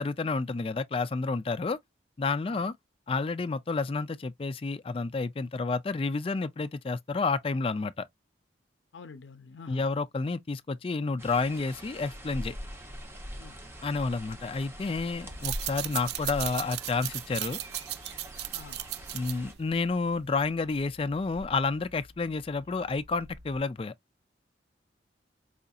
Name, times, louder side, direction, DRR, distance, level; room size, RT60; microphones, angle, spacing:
voice 1, 0.0-1.8 2.2-2.7 3.1-8.1 9.7-12.6 13.8-17.6 19.1-23.9, left 4 dB, 30° left, 0.3 m, -30 dB
voice 2, 8.9-9.9 13.4-13.6 16.0-16.1 18.5-18.8, left 5 dB, 85° left, 0.5 m, -47 dB
sound 1, 11.2-19.5, equal, 15° right, 0.8 m, -43 dB
Bird vocalization bird call bird song, 15.1-23.6, right 1 dB, 80° right, 1.1 m, -54 dB
sound 2, 15.3-20.5, right 15 dB, 60° right, 0.3 m, -36 dB
4.9 x 2.7 x 2.3 m
head